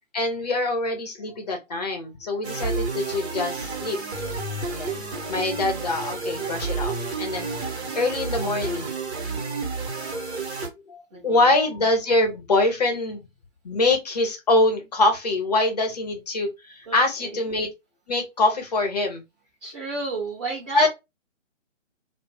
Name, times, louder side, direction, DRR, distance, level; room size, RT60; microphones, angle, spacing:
voice 1, 0.1-4.0 4.7-7.5 7.9-8.9 10.9-13.2 13.6-17.7 18.1-19.2 20.7-20.9, left 2 dB, 35° left, 0.7 m, -24 dB
sound 1, 2.4-10.7, right 3 dB, 55° right, 1.0 m, -30 dB
voice 2, 11.1-11.5 16.9-17.4 19.6-20.9, right 3 dB, 20° right, 0.6 m, -33 dB
2.3 x 2.1 x 3.3 m
figure-of-eight pair, 140°, 38 cm